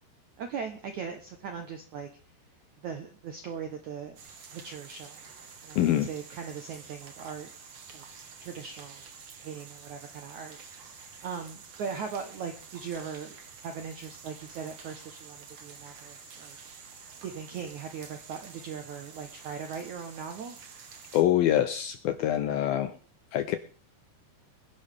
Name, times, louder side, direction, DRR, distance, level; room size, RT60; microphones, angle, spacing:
voice 1, 0.4-2.1 2.8-4.2 4.5-5.2 5.6-7.5 7.9-8.0 8.4-9.0 9.4-13.4 13.6-16.6 17.2-20.6, right 6 dB, 75° right, 5 dB, 1.8 m, -39 dB
sound 1, 4.2-21.2, right 5 dB, 55° right, 1.5 m, -49 dB
voice 2, 5.8-6.1 21.1-22.9 23.3-23.6, left 12 dB, 75° left, 8 dB, 2.2 m, -25 dB
24.5 x 10.5 x 3.6 m, 0.41 s
omnidirectional pair, 5.1 m